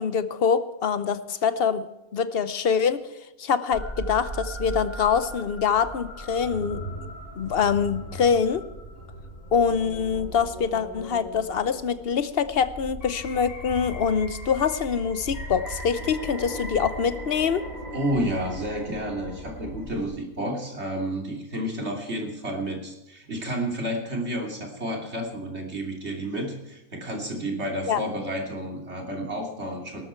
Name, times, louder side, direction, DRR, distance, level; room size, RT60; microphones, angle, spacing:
voice 1, 0.0-1.9 2.1-3.0 3.4-8.6 9.5-17.7 27.9-28.0, left 6 dB, 50° left, 13 dB, 0.9 m, -25 dB
sound 1, 3.7-20.0, right 1 dB, 30° left, 5.8 m, -38 dB
voice 2, 17.9-30.0, right 1 dB, 50° right, 1 dB, 3.2 m, -31 dB
18.5 x 12.5 x 4.5 m, 0.94 s
omnidirectional pair, 1.5 m